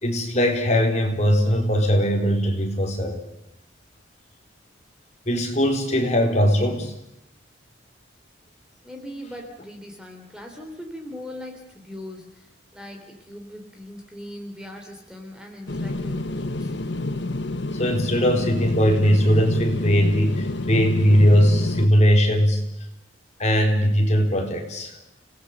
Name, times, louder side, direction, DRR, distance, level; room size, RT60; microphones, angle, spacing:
voice 1, 0.0-3.2 5.3-6.9 17.8-22.7 23.4-25.0, equal, 35° left, 2 dB, 4.0 m, -20 dB
voice 2, 8.8-16.7, left 1 dB, 5° right, 3 dB, 3.2 m, -40 dB
sound 1, 15.7-21.9, left 2 dB, 65° left, 1.3 m, -28 dB
30.0 x 19.0 x 6.6 m, 0.89 s
head